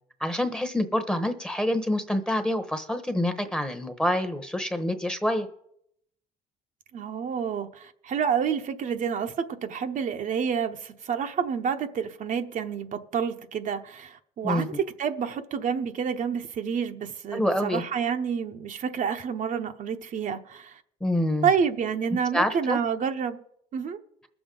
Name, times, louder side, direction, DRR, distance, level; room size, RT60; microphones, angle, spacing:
voice 1, 0.2-5.5 14.4-14.7 17.3-17.8 21.0-21.5 22.3-22.8, left 1 dB, 5° left, 1.0 m, -26 dB
voice 2, 6.9-20.8 21.4-23.4 23.7-24.0, right 7 dB, 50° right, 0.8 m, -29 dB
21.0 x 7.1 x 3.8 m
cardioid pair, 110°, 17 cm